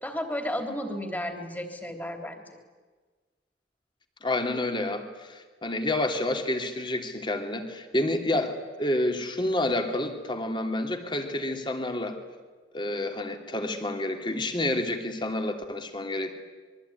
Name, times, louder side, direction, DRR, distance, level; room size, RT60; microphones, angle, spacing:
voice 1, 0.0-2.4, left 1 dB, 10° left, 5 dB, 3.4 m, -33 dB
voice 2, 4.2-12.2 12.7-16.3, left 1 dB, 25° left, 5 dB, 3.0 m, -29 dB
26.5 x 23.0 x 9.7 m, 1.4 s
head